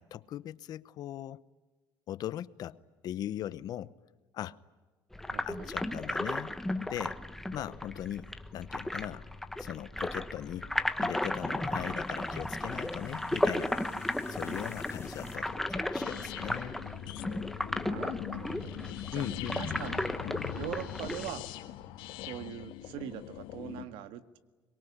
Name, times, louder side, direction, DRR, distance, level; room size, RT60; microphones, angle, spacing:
voice 1, 0.0-1.4 2.1-2.8 3.0-3.9 4.3-4.6 5.4-7.2 7.5-9.3 9.6-10.7 11.0-13.8 14.3-16.8 19.1-19.6, left 12 dB, 50° left, 0.8 m, -39 dB
sound 1, 5.1-21.3, left 1 dB, 5° left, 1.1 m, -35 dB
voice 2, 5.3-5.7 17.8-18.7 19.1-20.1 20.6-21.5 22.2-24.4, right 11 dB, 90° right, 1.8 m, -42 dB
sound 2, 9.1-17.4, left 5 dB, 30° left, 4.0 m, -52 dB
sound 3, 16.0-23.8, left 13 dB, 85° left, 1.8 m, -41 dB
25.0 x 22.5 x 10.0 m
cardioid pair, 150°, 8 cm